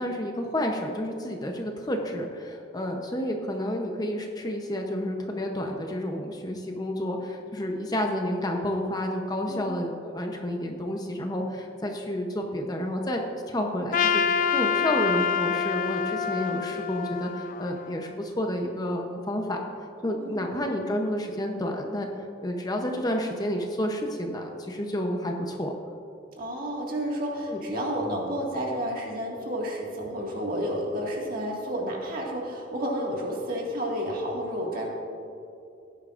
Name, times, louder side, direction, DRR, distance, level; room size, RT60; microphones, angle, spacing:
voice 1, 0.0-14.2 14.5-19.6 20.0-22.1 22.4-25.7 27.5-27.6, left 1 dB, 20° left, 2 dB, 0.7 m, -30 dB
voice 2, 9.5-9.8 20.2-20.6 26.3-34.9, equal, 50° right, -1 dB, 1.9 m, -31 dB
Trumpet, 13.9-18.2, left 6 dB, 45° left, 0.3 m, -27 dB
16.5 x 10.0 x 2.5 m, 2.7 s
head